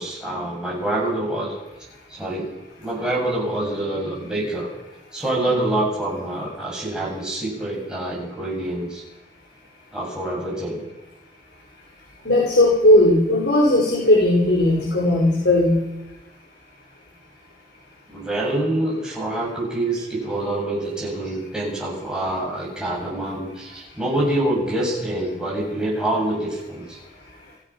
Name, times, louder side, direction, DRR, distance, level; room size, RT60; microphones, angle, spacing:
voice 1, 0.0-1.5 2.1-2.5 2.8-4.7 5.1-9.0 9.9-10.8 18.1-27.0, right 1 dB, 5° right, -4 dB, 7.2 m, -26 dB
voice 2, 12.3-15.8, left 1 dB, 75° left, -2 dB, 5.5 m, -17 dB
29.0 x 16.5 x 5.9 m, 1.0 s
head